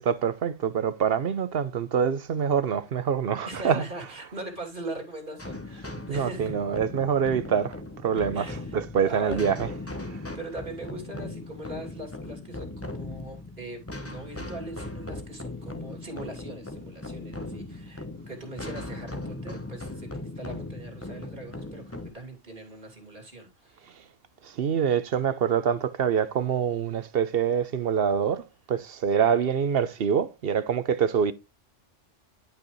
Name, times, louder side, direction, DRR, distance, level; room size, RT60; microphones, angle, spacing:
voice 1, 0.0-4.3 6.1-7.8 8.0-9.8 10.1-10.2 24.4-31.3, right 7 dB, 55° right, 0.8 m, -25 dB
voice 2, 3.4-6.5 8.3-8.8 9.0-9.6 10.3-24.0 29.3-29.4, right 2 dB, 40° right, 2.7 m, -41 dB
sound 1, 5.4-22.1, left 2 dB, 15° left, 0.8 m, -38 dB
11.5 x 5.1 x 3.1 m
omnidirectional pair, 1.3 m